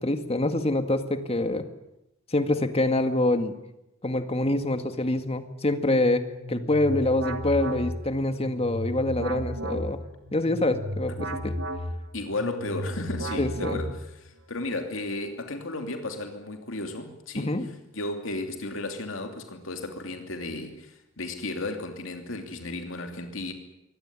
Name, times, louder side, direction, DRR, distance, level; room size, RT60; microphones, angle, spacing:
voice 1, 0.0-1.6 2.3-3.5 4.0-6.2 6.5-10.0 10.3-11.6 13.4-13.8 17.4-17.7, left 1 dB, 30° left, 8 dB, 1.9 m, -25 dB
sound 1, 6.2-14.3, equal, 85° right, 2.8 m, -34 dB
voice 2, 12.1-17.6 17.9-23.5, left 2 dB, 70° left, 5 dB, 2.9 m, -34 dB
23.5 x 18.0 x 9.9 m, 0.89 s
head